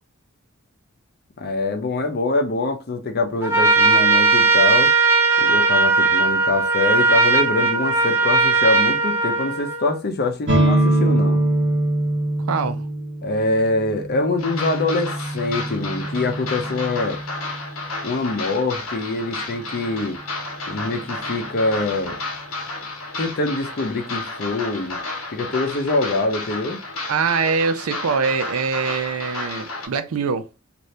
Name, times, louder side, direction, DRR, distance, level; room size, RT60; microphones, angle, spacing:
voice 1, 1.4-4.9 5.4-11.4 13.2-17.2 18.0-20.2 20.7-22.2 23.2-25.0 25.3-26.8, left 2 dB, 50° left, 0.6 m, -24 dB
Trumpet, 3.4-9.9, right 3 dB, 10° right, 0.6 m, -18 dB
sound 1, 10.5-18.1, right 1 dB, 55° right, 1.0 m, -24 dB
voice 2, 12.5-12.9 27.1-30.5, right 5 dB, 85° right, 0.5 m, -23 dB
industrial clap delay, 14.4-29.9, left 3 dB, 85° left, 0.8 m, -32 dB
2.7 x 2.5 x 3.2 m
head